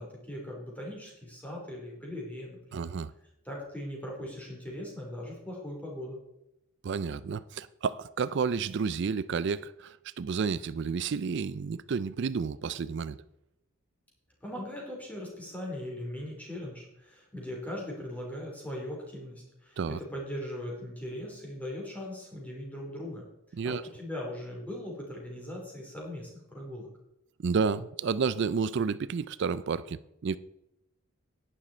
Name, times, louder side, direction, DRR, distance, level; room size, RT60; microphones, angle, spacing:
voice 1, 0.0-2.9 3.5-6.2 14.4-23.2 23.6-26.9, left 1 dB, 5° left, 3.6 m, -39 dB
voice 2, 2.7-3.1 6.8-13.2 19.8-20.0 23.5-23.8 27.4-30.4, right 5 dB, 55° right, 0.4 m, -31 dB
11.0 x 9.9 x 4.3 m
head